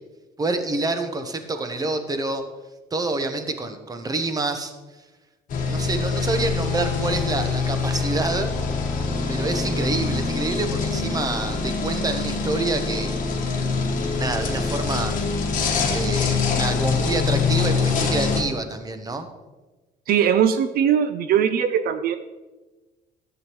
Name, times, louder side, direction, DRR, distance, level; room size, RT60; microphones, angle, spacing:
voice 1, 0.4-2.4 2.9-4.7 5.7-8.5 9.3-13.1 14.1-15.2 15.6-19.3, right 2 dB, 20° right, 8 dB, 1.0 m, -27 dB
sound 1, 5.5-18.4, left 4 dB, 55° left, 1.4 m, -24 dB
voice 2, 20.1-22.2, right 8 dB, 65° right, 10 dB, 0.5 m, -20 dB
12.0 x 8.0 x 3.1 m, 1.2 s
cardioid pair, 110°, 17 cm